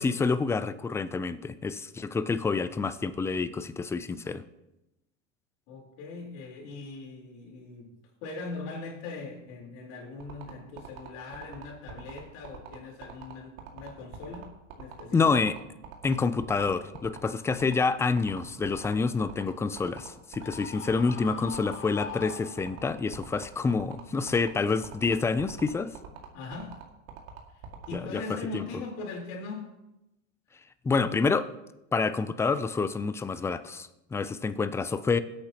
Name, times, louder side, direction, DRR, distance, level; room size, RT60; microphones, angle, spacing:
voice 1, 0.0-4.4 15.1-15.5 16.0-25.9 27.9-28.6 30.8-31.5 31.9-35.2, left 4 dB, 10° left, 13 dB, 0.3 m, -28 dB
voice 2, 5.7-14.5 14.8-15.3 26.3-26.8 27.5-29.7, left 3 dB, 60° left, -1 dB, 3.9 m, -40 dB
sound 1, 10.2-28.0, right 10 dB, 60° right, 2.1 m, -44 dB
Screaming, 20.4-23.1, left 7 dB, 35° left, 1.0 m, -42 dB
20.0 x 8.5 x 2.9 m, 0.94 s
hypercardioid pair, 110°, 37 cm